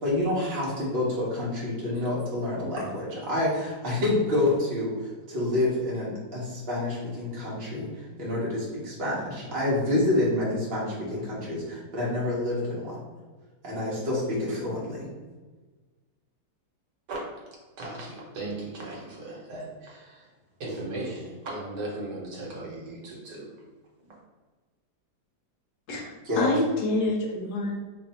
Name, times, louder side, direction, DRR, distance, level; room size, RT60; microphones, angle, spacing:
voice 1, 0.0-4.9 5.3-7.9 8.2-13.0 13.6-15.1 26.2-26.5, left 1 dB, 45° right, -7 dB, 0.9 m, -28 dB
voice 2, 17.8-20.3 20.6-23.5 24.0-24.1, right 2 dB, 70° right, -3 dB, 1.5 m, -37 dB
voice 3, 25.9-27.7, left 2 dB, 70° left, 0 dB, 1.1 m, -27 dB
3.2 x 2.4 x 4.1 m, 1.3 s
omnidirectional pair, 1.9 m